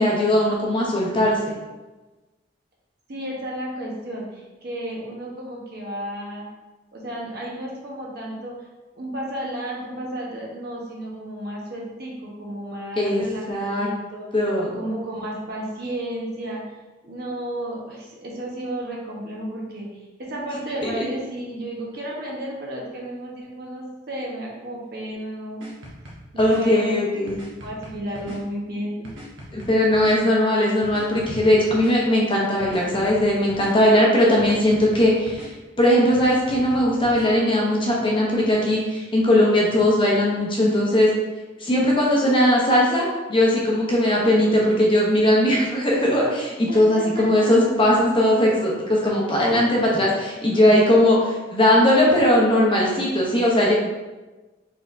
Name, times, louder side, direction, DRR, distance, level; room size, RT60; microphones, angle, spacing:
voice 1, 0.0-1.4 13.0-13.9 14.3-14.8 21.0-21.1 26.4-27.4 29.5-35.5 35.8-41.1 41.6-53.7, left 1 dB, 25° left, -3 dB, 0.8 m, -19 dB
voice 2, 3.1-6.5 6.9-8.7 8.9-14.3 14.7-16.6 17.0-25.7 26.3-27.1 27.6-29.1 46.7-47.5 50.0-50.6, right 1 dB, 55° right, -3 dB, 1.0 m, -32 dB
sound 1, 25.6-26.6 27.3-28.4 29.0-30.2 30.8-31.9 32.6-33.7 34.4-35.5 36.2-37.3, equal, 85° right, 1.0 m, -40 dB
4.3 x 3.6 x 2.6 m, 1.2 s
head